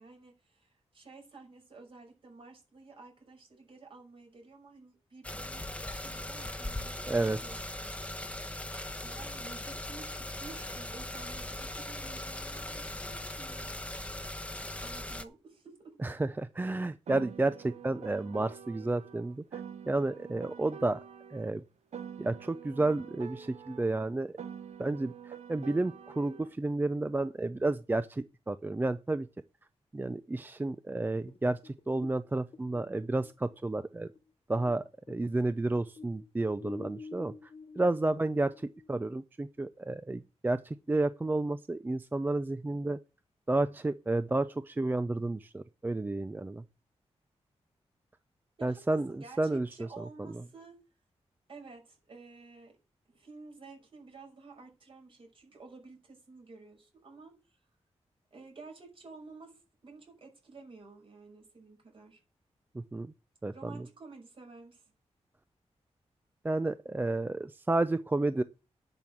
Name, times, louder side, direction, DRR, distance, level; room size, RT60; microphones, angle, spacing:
voice 1, 0.0-8.6 9.0-13.9 14.8-15.9 48.6-50.8 51.5-52.7 53.1-57.6 58.3-62.2 63.5-64.9, right 3 dB, 50° right, 6.0 m, -52 dB
sound 1, 5.2-15.2, left 1 dB, 10° left, 1.0 m, -39 dB
voice 2, 7.1-7.4 16.0-21.0 21.3-21.6 22.2-24.3 24.8-29.3 29.9-34.1 34.5-37.5 37.8-43.0 43.5-46.6 48.6-49.1 49.4-50.4 62.7-63.1 63.4-63.9 66.4-68.4, right 2 dB, 15° right, 0.5 m, -31 dB
Piano, 17.1-21.5 21.9-26.5, right 7 dB, 80° right, 1.1 m, -46 dB
sound 2, 31.3-34.8 35.1-39.2, left 4 dB, 50° left, 1.3 m, -48 dB
10.5 x 6.0 x 7.7 m
wide cardioid pair, 120°, 11 cm